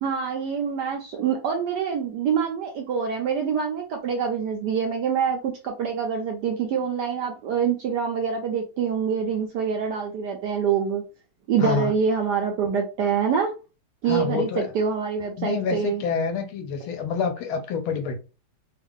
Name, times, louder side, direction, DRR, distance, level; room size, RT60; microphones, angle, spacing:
voice 1, 0.0-11.0 11.5-13.5 14.0-16.0, right 6 dB, 70° right, 1.0 m, -25 dB
voice 2, 11.6-11.9 14.0-14.7 15.4-18.2, left 5 dB, 75° left, 1.5 m, -27 dB
3.6 x 2.4 x 3.5 m
omnidirectional pair, 2.3 m